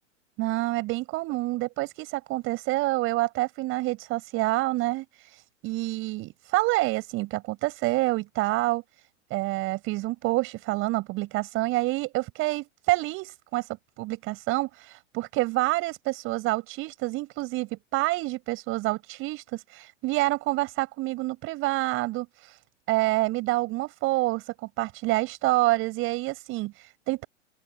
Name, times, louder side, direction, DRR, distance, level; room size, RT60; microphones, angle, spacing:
voice 1, 0.4-8.8 9.3-22.6 22.9-27.2, right 20 dB, 35° right, 6.7 m, -28 dB
open air
figure-of-eight pair, 105°, 37 cm